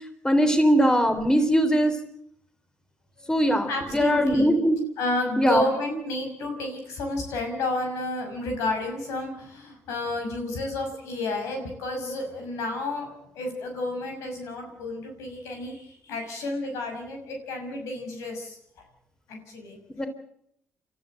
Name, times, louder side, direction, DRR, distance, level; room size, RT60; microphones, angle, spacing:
voice 1, 0.2-2.0 3.3-4.8 5.4-5.6 20.0-20.1, equal, 15° left, 7 dB, 3.8 m, -21 dB
voice 2, 3.7-4.5 5.0-18.6 19.3-19.8, left 2 dB, 85° left, 4 dB, 6.0 m, -31 dB
28.0 x 13.5 x 7.9 m, 0.73 s
supercardioid pair, 65°, 5 cm